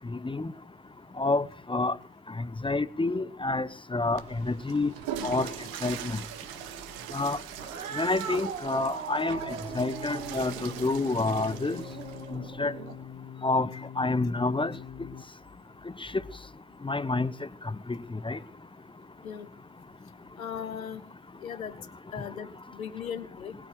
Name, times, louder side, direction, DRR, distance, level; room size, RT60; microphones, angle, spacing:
voice 1, 0.1-0.5 1.2-1.4 1.7-2.0 2.4-4.9 5.2-5.5 5.8-6.2 7.1-7.4 8.0-11.8 12.3-12.7 13.4-13.7 14.0-14.7 16.8-17.3 17.9-18.4, left 3 dB, 15° left, 0.8 m, -28 dB
Water / Toilet flush, 4.0-12.4, right 9 dB, 65° right, 1.8 m, -41 dB
Cat, 7.5-13.1, right 6 dB, 85° right, 1.7 m, -39 dB
sound 1, 9.8-15.2, left 9 dB, 35° left, 1.5 m, -44 dB
voice 2, 20.4-21.0 21.4-21.9 22.1-22.5 22.7-23.5, left 8 dB, 90° left, 1.3 m, -37 dB
20.0 x 8.9 x 6.8 m
figure-of-eight pair, 50°, 40 cm